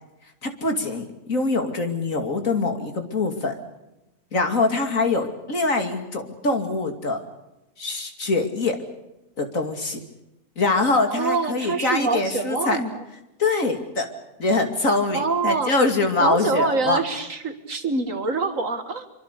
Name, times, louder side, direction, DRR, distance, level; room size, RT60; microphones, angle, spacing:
voice 1, 0.4-3.5 4.3-7.2 7.8-8.8 9.4-10.0 10.6-12.8 13.4-14.1 14.4-17.0, left 3 dB, 55° left, 5 dB, 3.0 m, -23 dB
voice 2, 11.1-13.0 15.1-15.7 16.2-19.1, right 4 dB, 55° right, 8 dB, 2.2 m, -25 dB
25.5 x 25.0 x 6.7 m, 0.94 s
omnidirectional pair, 1.7 m